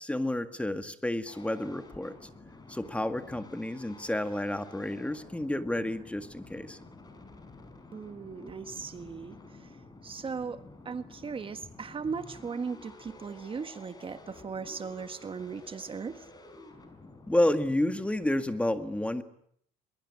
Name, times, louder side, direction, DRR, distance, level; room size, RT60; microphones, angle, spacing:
voice 1, 0.0-2.2 2.7-6.8 17.3-19.2, left 1 dB, 5° left, 9 dB, 1.9 m, -30 dB
sound 1, 1.2-18.5, left 2 dB, 25° left, 5.3 m, -51 dB
voice 2, 7.9-9.8 10.0-16.2, right 5 dB, 30° right, 10 dB, 1.6 m, -38 dB
22.5 x 22.5 x 9.8 m, 0.68 s
cardioid pair, 110°, 17 cm